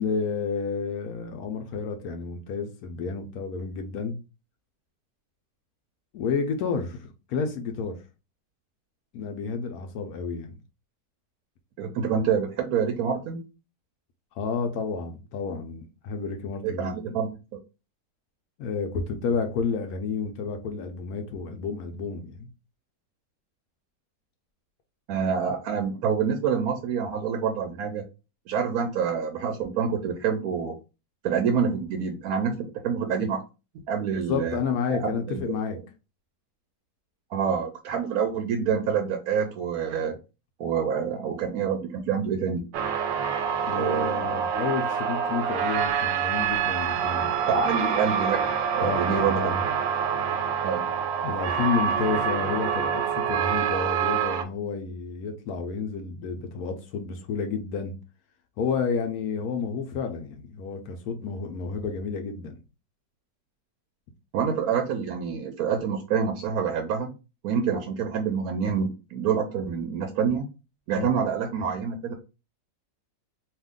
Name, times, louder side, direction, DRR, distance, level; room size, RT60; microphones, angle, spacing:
voice 1, 0.0-4.2 6.1-8.0 9.1-10.6 14.4-16.9 18.6-22.5 34.3-35.8 43.7-47.4 48.8-49.7 51.2-58.0 58.6-62.6 71.0-71.1, left 5 dB, 70° left, 0.9 m, -30 dB
voice 2, 11.8-13.5 16.6-17.6 25.1-28.0 28.5-30.8 31.2-33.4 33.9-34.6 34.9-35.6 37.3-40.2 40.6-42.6 43.7-44.5 47.5-48.4 48.7-49.5 50.6-50.9 64.3-67.1 67.4-70.5 70.9-72.1, right 6 dB, 70° right, 0.9 m, -27 dB
sound 1, 42.7-54.4, right 7 dB, 85° right, 1.2 m, -26 dB
2.8 x 2.4 x 3.5 m
omnidirectional pair, 1.9 m